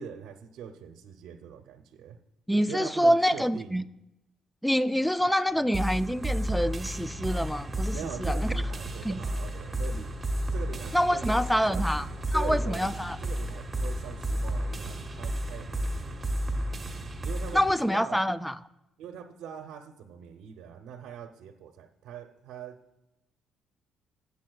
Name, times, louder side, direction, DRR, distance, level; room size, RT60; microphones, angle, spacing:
voice 1, 0.0-2.2 2.7-3.8 7.9-10.1 10.5-11.2 11.7-12.8 13.2-16.3 17.2-17.6 17.9-18.3 19.0-22.8, right 8 dB, 85° right, 6 dB, 0.6 m, -42 dB
voice 2, 2.5-3.8 4.6-8.5 9.0-9.2 10.9-12.1 12.3-13.2 17.5-18.6, equal, ahead, 14 dB, 0.4 m, -26 dB
sound 1, 5.5-16.8, equal, 35° left, 2.1 m, -52 dB
sound 2, 5.7-17.7, right 1 dB, 20° right, 1.0 m, -32 dB
14.0 x 8.4 x 2.3 m, 0.91 s
cardioid pair, 120°, 0 cm